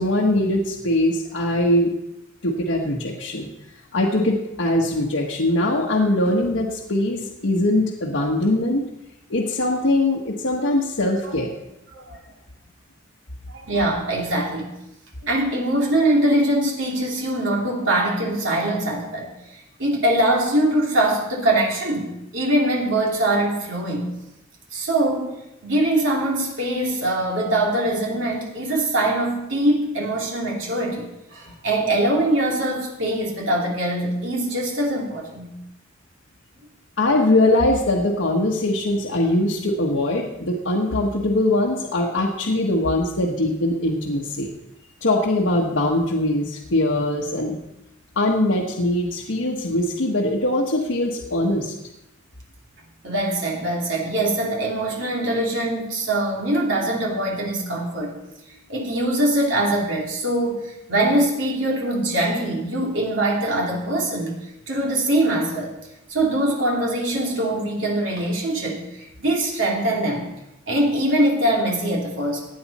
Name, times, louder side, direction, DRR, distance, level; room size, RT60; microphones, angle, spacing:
voice 1, 0.0-2.0 2.4-3.5 3.9-8.9 9.3-11.5 37.0-44.5 45.0-47.6 48.1-51.7, left 1 dB, 85° left, -2 dB, 1.4 m, -21 dB
voice 2, 13.5-14.7 15.2-19.3 19.8-24.1 24.7-25.3 25.6-35.5 53.0-58.1 58.7-64.3 64.7-65.7 66.1-70.2 70.7-72.4, right 1 dB, 70° right, -2 dB, 3.1 m, -22 dB
16.5 x 9.5 x 4.2 m, 0.91 s
head